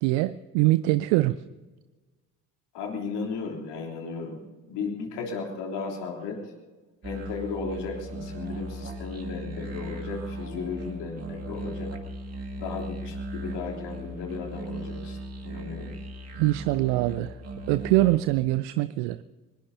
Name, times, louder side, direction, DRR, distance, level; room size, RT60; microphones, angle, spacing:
voice 1, 0.0-1.4 16.3-17.4 17.7-19.2, right 18 dB, 55° right, 16 dB, 0.6 m, -23 dB
voice 2, 2.7-4.4 4.7-6.5 7.0-12.0 12.5-15.2 15.4-15.9, left 4 dB, 60° left, 0 dB, 3.4 m, -35 dB
sound 1, 7.0-18.2, right 1 dB, 30° right, 2.7 m, -37 dB
24.0 x 20.5 x 2.8 m, 1.3 s
figure-of-eight pair, 50°, 47 cm